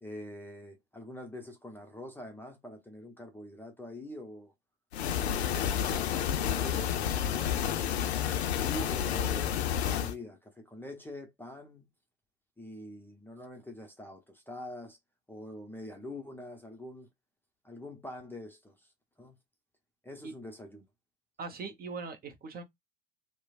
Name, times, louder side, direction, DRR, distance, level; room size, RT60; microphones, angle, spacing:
voice 1, 0.0-4.5 5.1-7.6 8.5-9.6 9.8-11.8 12.6-15.0 15.3-17.1 17.6-18.9 19.2-19.3 20.0-20.9, left 1 dB, 5° left, 0.7 m, -45 dB
sound 1, 4.9-10.1, left 9 dB, 85° left, 0.5 m, -30 dB
voice 2, 21.4-22.6, right 4 dB, 30° right, 0.8 m, -40 dB
3.0 x 2.1 x 2.3 m
hypercardioid pair, 80°, 31 cm